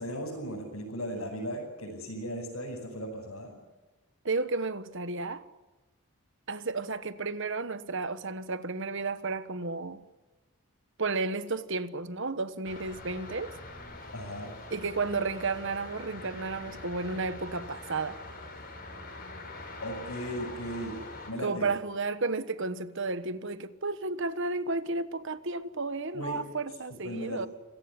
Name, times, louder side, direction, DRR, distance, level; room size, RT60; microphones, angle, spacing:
voice 1, 0.0-3.5 14.1-14.5 19.8-21.7 26.1-26.4 27.0-27.5, equal, 75° left, 6.5 m, -37 dB
voice 2, 4.2-5.4 6.5-10.0 11.0-13.5 14.7-18.2 21.4-27.5, right 3 dB, 55° right, 1.3 m, -32 dB
sound 1, 12.6-21.3, left 2 dB, 40° left, 6.1 m, -44 dB
26.0 x 17.5 x 9.9 m
head